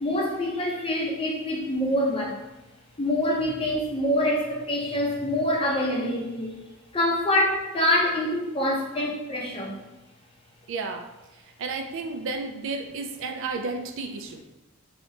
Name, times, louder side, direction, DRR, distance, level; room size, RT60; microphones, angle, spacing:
voice 1, 0.0-2.4 3.0-6.6 6.9-9.8, left 1 dB, 25° left, -2 dB, 0.6 m, -25 dB
voice 2, 10.7-11.1 11.6-14.4, right 3 dB, 60° right, 5 dB, 0.4 m, -32 dB
3.2 x 2.8 x 2.7 m, 1.0 s
head